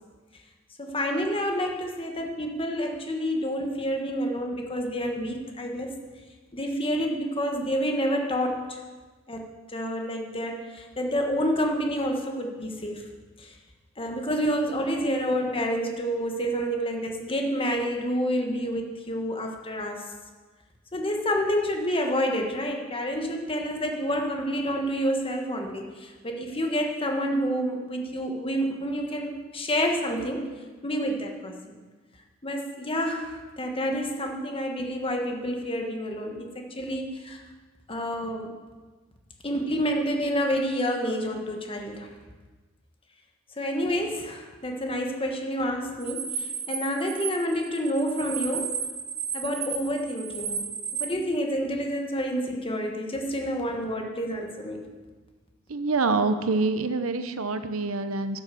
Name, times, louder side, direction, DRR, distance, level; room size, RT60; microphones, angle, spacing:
voice 1, 0.8-5.9 6.5-8.8 9.3-9.4 9.7-13.1 13.4-13.5 14.0-20.1 20.9-30.5 30.8-31.6 32.4-37.4 37.9-38.5 39.4-42.1 43.6-48.7 49.3-50.7 50.9-54.8, equal, 25° left, 2 dB, 1.4 m, -28 dB
sound 1, 46.0-51.1, right 7 dB, 35° right, 1.1 m, -33 dB
voice 2, 55.7-58.4, right 3 dB, 80° right, 10 dB, 0.7 m, -26 dB
11.5 x 6.6 x 7.0 m, 1.4 s
head